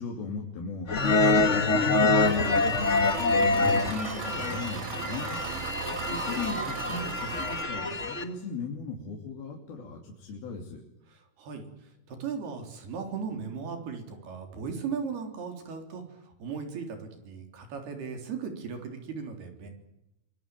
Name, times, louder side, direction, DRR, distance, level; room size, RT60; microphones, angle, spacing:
voice 1, 0.0-5.4 6.1-10.8, left 4 dB, 70° left, 0 dB, 4.9 m, -38 dB
sound 1, 0.9-8.2, left 3 dB, 35° left, 1.2 m, -26 dB
Engine, 2.2-7.6, right 8 dB, 65° right, 2.5 m, -38 dB
voice 2, 11.1-11.7 12.1-19.7, right 6 dB, 85° right, 4 dB, 5.6 m, -37 dB
25.5 x 21.5 x 9.1 m, 0.87 s
omnidirectional pair, 4.4 m